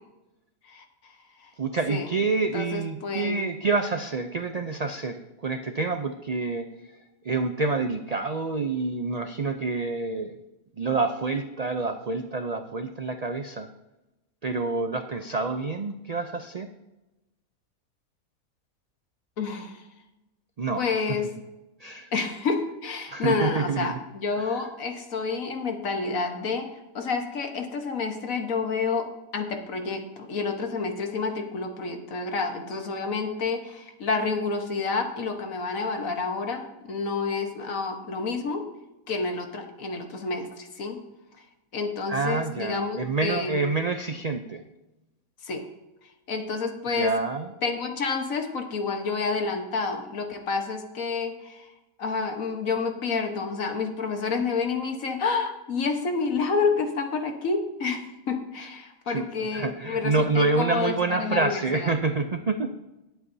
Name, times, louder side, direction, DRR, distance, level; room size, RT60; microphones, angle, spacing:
voice 1, 1.6-6.7 7.2-10.4 10.8-13.7 14.4-16.7 20.6-20.8 21.8-22.1 23.1-24.0 24.4-24.5 42.1-44.6 47.0-47.5 59.1-59.3 59.5-62.7, right 3 dB, 80° right, 7 dB, 0.3 m, -27 dB
voice 2, 2.5-3.4 19.4-19.8 20.8-21.3 22.1-26.7 26.9-38.7 39.1-41.0 41.7-43.6 45.4-45.7 46.3-47.1 47.6-51.7 52.0-61.9, left 4 dB, 65° left, 4 dB, 1.6 m, -29 dB
19.0 x 8.2 x 2.7 m, 0.99 s
omnidirectional pair, 1.5 m